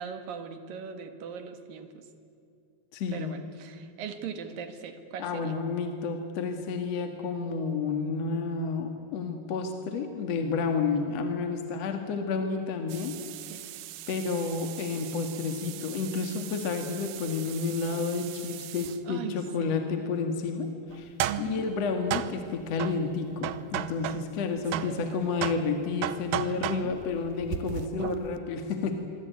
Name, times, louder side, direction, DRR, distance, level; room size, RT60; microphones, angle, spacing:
voice 1, 0.0-2.1 3.1-5.5 13.4-13.6 19.0-19.8 21.3-21.7 24.7-25.6 26.4-27.0, right 7 dB, 60° right, 8 dB, 3.1 m, -40 dB
voice 2, 2.9-3.3 5.2-13.2 14.1-28.9, left 4 dB, 50° left, 5 dB, 2.2 m, -30 dB
sound 1, 12.9-19.0 20.9-24.4 24.7-28.4, right 12 dB, 85° right, 1.9 m, -36 dB
26.5 x 23.0 x 9.5 m, 2.6 s
omnidirectional pair, 5.1 m